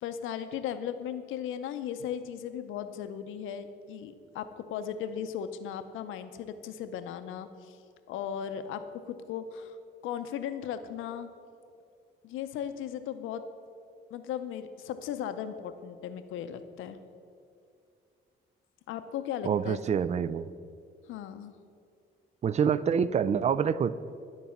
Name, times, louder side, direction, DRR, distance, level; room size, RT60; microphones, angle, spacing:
voice 1, 0.0-7.8 8.1-9.8 10.0-11.3 12.2-13.4 14.1-17.0 18.9-20.1 21.1-21.5, left 9 dB, 90° left, 10 dB, 0.6 m, -37 dB
voice 2, 19.4-20.5 22.4-23.9, right 7 dB, 35° right, 16 dB, 0.3 m, -26 dB
11.5 x 4.1 x 7.1 m, 2.4 s
cardioid pair, 90°, 20 cm